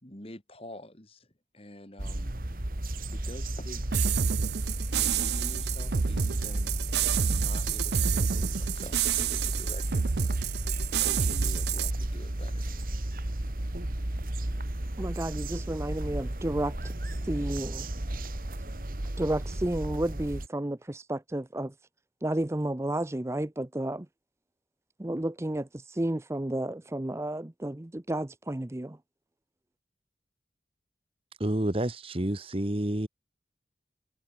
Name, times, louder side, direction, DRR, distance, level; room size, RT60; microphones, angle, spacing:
voice 1, 0.0-1.3 1.5-2.3 3.1-3.8 4.9-10.5 11.0-12.7, left 1 dB, 35° left, 3.2 m, -46 dB
sound 1, 2.0-20.5, right 1 dB, 55° right, 1.8 m, -33 dB
sound 2, 3.9-11.9, right 7 dB, 70° right, 0.6 m, -28 dB
voice 2, 15.0-16.7 17.2-17.9 19.2-21.7 22.2-24.1 25.0-29.0, right 1 dB, 15° right, 0.5 m, -32 dB
voice 3, 31.4-33.1, right 1 dB, 30° right, 1.2 m, -29 dB
head